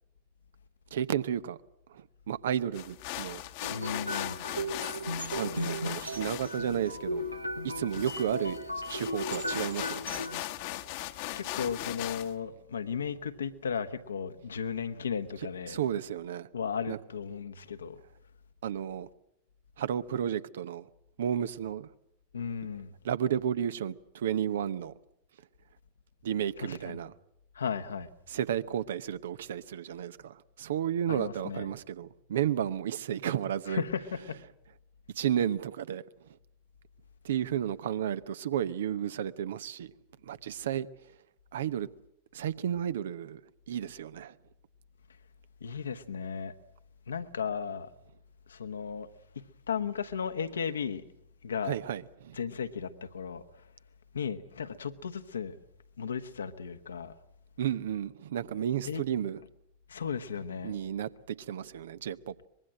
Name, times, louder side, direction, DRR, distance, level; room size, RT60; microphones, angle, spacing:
voice 1, 0.9-1.6 1.9-3.4 5.3-7.2 7.6-10.2 15.7-16.5 16.9-17.0 18.6-19.1 19.8-20.9 21.2-21.9 23.0-24.9 26.2-27.1 28.3-33.8 35.1-36.0 37.2-39.9 40.2-40.9 41.5-41.9 42.3-43.4 43.7-44.3 51.6-52.4 57.6-59.4 60.6-62.5, right 9 dB, 60° right, 0.8 m, -32 dB
sound 1, 2.7-12.3, left 16 dB, 50° left, 1.2 m, -39 dB
sound 2, 3.6-10.4, equal, 85° right, 1.1 m, -36 dB
voice 2, 3.7-4.4 11.3-15.8 16.5-18.0 22.3-22.9 26.6-27.0 27.5-28.1 31.1-31.7 33.7-34.4 45.6-46.5 47.1-47.9 48.5-49.1 49.3-51.0 51.4-51.8 52.3-53.7 54.1-55.6 56.0-57.2 58.8-59.0 59.9-60.8, left 6 dB, 70° left, 1.2 m, -35 dB
24.0 x 21.5 x 7.6 m
figure-of-eight pair, 90°, 0 cm